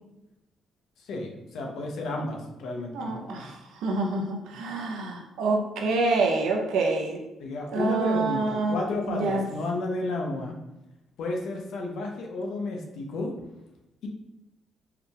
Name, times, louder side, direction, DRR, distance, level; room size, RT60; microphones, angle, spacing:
voice 1, 1.1-3.5 4.5-4.6 7.4-10.5 11.2-13.3, left 2 dB, 80° left, 1 dB, 0.7 m, -32 dB
voice 2, 2.9-7.2 7.7-8.8 9.1-9.4, right 3 dB, 85° right, 1 dB, 0.6 m, -27 dB
4.7 x 3.3 x 2.3 m, 0.93 s
cardioid pair, 90°, 0 cm